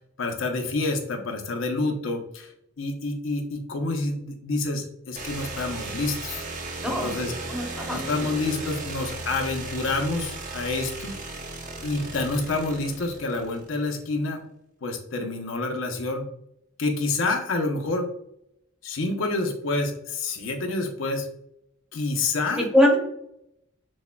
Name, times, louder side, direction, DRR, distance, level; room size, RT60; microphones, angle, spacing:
voice 1, 0.2-2.5 2.8-6.4 6.8-7.3 7.9-11.1 11.8-14.4 14.8-16.2 16.8-18.1 18.8-21.3 21.9-22.7, left 3 dB, 85° left, 4 dB, 0.6 m, -28 dB
sound 1, 5.2-13.9, right 3 dB, 40° right, 0.6 m, -36 dB
voice 2, 6.8-7.1 7.5-8.1 22.6-23.0, left 1 dB, 5° right, 0 dB, 0.7 m, -22 dB
6.2 x 2.1 x 2.2 m, 0.76 s
head